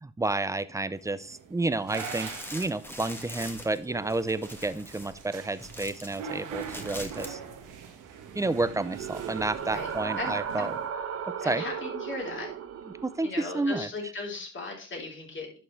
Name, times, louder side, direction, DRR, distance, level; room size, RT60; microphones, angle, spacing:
voice 1, 0.0-7.4 8.3-10.8 11.4-11.6 12.8-13.9, right 2 dB, 10° right, 15 dB, 0.5 m, -30 dB
sound 1, 0.9-10.9, right 6 dB, 85° right, 1.5 m, -43 dB
sound 2, 1.9-6.2 6.5-7.3 7.6-7.7, equal, 5° left, 1.5 m, -42 dB
sound 3, 8.2-13.3, right 7 dB, 55° right, 1.0 m, -36 dB
voice 2, 10.2-10.7 11.4-12.5 13.2-15.6, left 3 dB, 40° left, -1 dB, 3.6 m, -37 dB
10.5 x 6.3 x 3.2 m, 0.37 s
cardioid pair, 90°, 30 cm